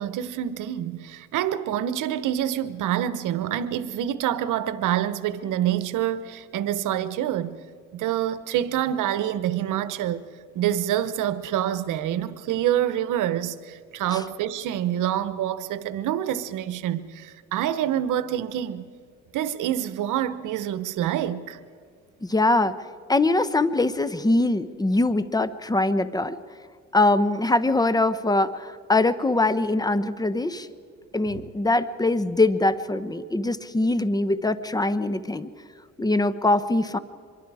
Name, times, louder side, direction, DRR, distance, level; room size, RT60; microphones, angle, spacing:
voice 1, 0.0-7.6 7.9-10.2 10.5-18.9 19.3-21.6, right 11 dB, 85° right, 1.0 m, -26 dB
voice 2, 22.2-22.7 23.1-26.4 26.9-30.7 31.1-35.5 36.0-37.0, left 2 dB, 15° left, 1.0 m, -22 dB
25.0 x 23.0 x 4.9 m
cardioid pair, 90°, 30 cm